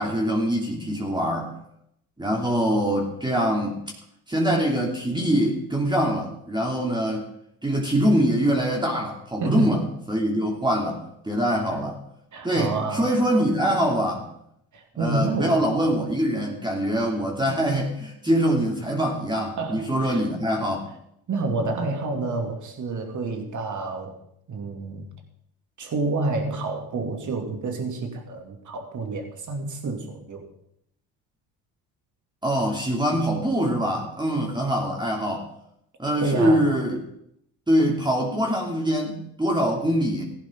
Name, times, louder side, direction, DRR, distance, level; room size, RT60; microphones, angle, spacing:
voice 1, 0.0-1.5 2.2-3.8 4.3-7.2 7.6-9.8 10.1-12.0 12.4-14.3 15.0-20.9 32.4-35.5 36.0-37.0 37.7-40.2, equal, 10° right, -1 dB, 2.8 m, -24 dB
voice 2, 9.4-9.8 12.3-13.1 14.7-15.7 19.6-20.2 21.3-24.2 24.5-25.1 25.8-30.5 36.2-36.7, right 3 dB, 45° right, 4 dB, 2.8 m, -29 dB
15.5 x 11.0 x 3.8 m, 0.74 s
supercardioid pair, 85°, 43 cm